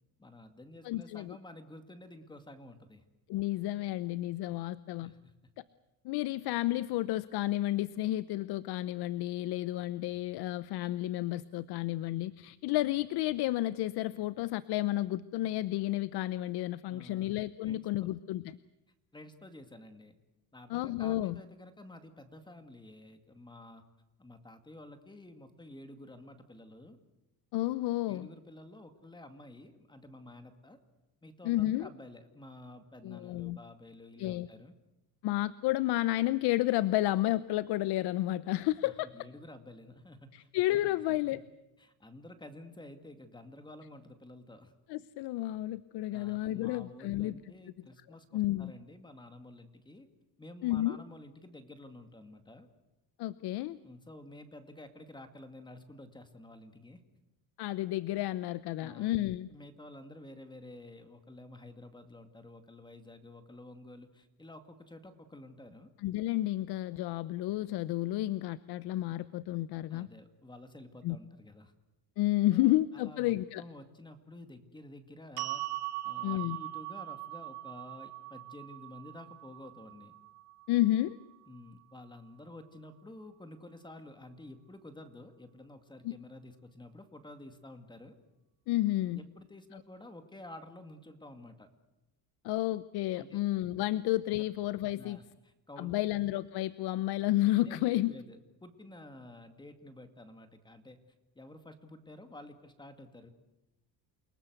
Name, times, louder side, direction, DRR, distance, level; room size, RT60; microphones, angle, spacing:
voice 1, 0.2-3.0 5.0-5.3 16.9-17.9 19.1-20.2 20.5-23.8 24.2-27.0 28.1-30.8 31.2-34.7 38.8-41.4 41.8-44.7 46.1-50.1 50.4-52.7 53.8-57.0 58.8-59.2 59.5-65.9 69.9-71.7 72.5-75.7 76.0-80.2 81.5-88.1 89.1-91.7 93.1-93.4 95.0-95.9 97.6-101.0 101.4-103.3, left 1 dB, 10° left, 7 dB, 2.3 m, -51 dB
voice 2, 0.8-1.4 3.3-5.1 5.6-5.7 6.0-18.6 20.7-21.4 27.5-28.3 31.4-31.9 33.0-33.6 34.2-34.5 35.2-39.1 40.3-41.4 44.9-47.4 48.3-48.7 50.6-51.0 53.2-53.8 57.6-59.5 66.0-70.1 71.0-71.2 72.2-73.6 76.2-76.6 80.7-81.2 86.0-86.1 88.7-89.2 89.7-89.8 92.4-95.2 95.8-98.1, left 16 dB, 75° left, 16 dB, 0.8 m, -31 dB
sound 1, 75.4-81.6, right 17 dB, 65° right, 1.5 m, -41 dB
29.0 x 19.0 x 8.0 m, 0.99 s
cardioid pair, 125°, 39 cm